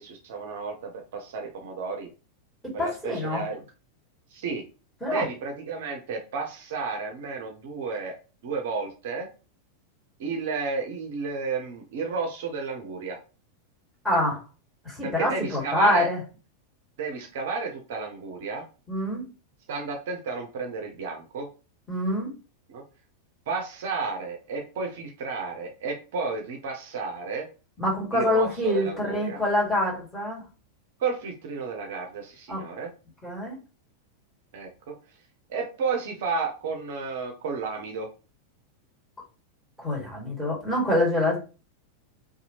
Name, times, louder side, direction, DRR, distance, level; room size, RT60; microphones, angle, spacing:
voice 1, 0.0-2.1 2.7-3.6 4.3-4.6 5.1-8.2 8.4-9.3 10.2-13.2 15.0-16.1 17.0-18.6 19.7-21.5 22.7-22.8 23.5-27.5 28.1-29.4 31.0-32.9 34.5-35.0 35.5-38.1, right 4 dB, 55° right, 3 dB, 0.5 m, -32 dB
voice 2, 2.6-3.4 5.0-5.2 14.0-14.4 14.8-16.2 18.9-19.3 21.9-22.3 27.8-30.4 32.5-32.6 33.2-33.6 39.8-41.4, left 1 dB, 5° left, -4 dB, 1.5 m, -25 dB
2.7 x 2.3 x 2.8 m, 0.33 s
figure-of-eight pair, 90°, 0 cm